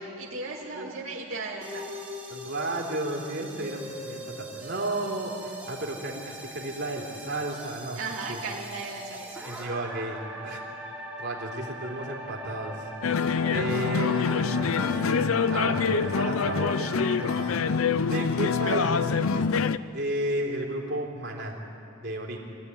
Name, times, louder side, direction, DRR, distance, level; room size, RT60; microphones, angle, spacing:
voice 1, 0.2-1.9 8.0-9.4, right 3 dB, 80° right, -4 dB, 2.3 m, -36 dB
voice 2, 0.7-1.0 2.3-8.0 8.3-8.4 9.4-10.6 11.2-12.9 13.5-19.5 19.9-21.6 22.0-22.4, right 1 dB, 50° right, -2 dB, 3.4 m, -33 dB
sound 1, 1.6-17.6, right 1 dB, 5° right, 3.2 m, -40 dB
sound 2, 13.0-19.8, left 5 dB, 85° left, 0.6 m, -25 dB
23.5 x 14.5 x 9.9 m, 2.7 s
head